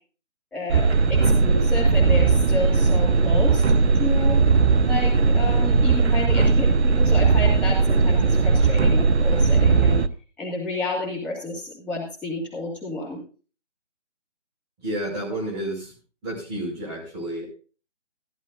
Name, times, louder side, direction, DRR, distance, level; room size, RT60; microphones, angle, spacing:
voice 1, 0.5-3.6 3.9-4.4 4.8-10.0 10.4-13.2, left 2 dB, 5° left, -9 dB, 2.1 m, -30 dB
sound 1, 0.7-10.1, right 4 dB, 65° right, 0.8 m, -18 dB
voice 2, 14.8-15.9 16.2-17.5, right 1 dB, 20° right, -2 dB, 5.8 m, -30 dB
15.5 x 14.5 x 2.6 m, 0.37 s
figure-of-eight pair, 155°, 36 cm